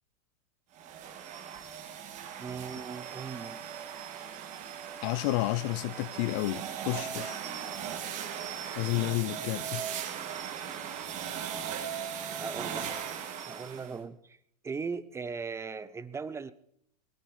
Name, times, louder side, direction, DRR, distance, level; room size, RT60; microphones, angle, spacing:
sound 1, 0.8-14.0, right 8 dB, 35° right, 2.2 m, -38 dB
voice 1, 2.4-3.6 12.4-12.9 13.5-14.4 14.6-16.5, right 5 dB, 15° right, 0.6 m, -38 dB
voice 2, 5.0-7.4 8.7-9.8, left 19 dB, 50° left, 0.6 m, -31 dB
22.0 x 10.0 x 5.5 m
hypercardioid pair, 125°, 21 cm